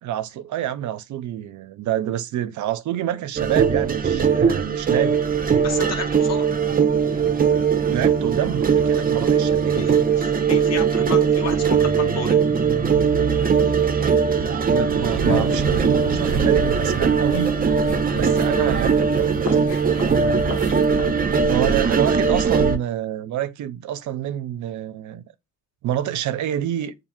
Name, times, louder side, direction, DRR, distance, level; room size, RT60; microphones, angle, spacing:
voice 1, 0.0-5.2 7.9-10.1 14.7-17.6 18.1-20.5 21.5-25.2 25.8-26.9, right 11 dB, 70° right, 0.6 m, -27 dB
sound 1, 3.4-22.8, right 6 dB, 30° right, 0.6 m, -20 dB
voice 2, 5.6-6.5 9.7-12.4, left 5 dB, 60° left, 1.4 m, -31 dB
sound 2, 15.1-21.1, left 8 dB, 90° left, 0.7 m, -36 dB
7.1 x 2.6 x 2.6 m
cardioid pair, 90°, 30 cm